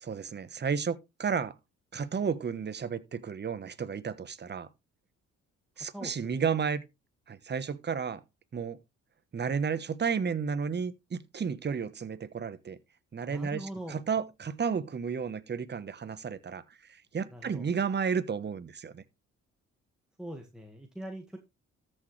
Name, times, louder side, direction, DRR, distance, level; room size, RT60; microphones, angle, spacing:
voice 1, 0.0-1.5 1.9-4.7 5.8-6.8 7.3-8.2 8.5-8.8 9.3-12.8 13.1-16.6 17.1-19.0, right 6 dB, 35° right, 1.1 m, -32 dB
voice 2, 5.9-6.4 13.3-14.0 17.3-17.7 20.2-21.4, right 1 dB, ahead, 1.8 m, -42 dB
13.5 x 6.6 x 3.3 m
cardioid pair, 90°, 30 cm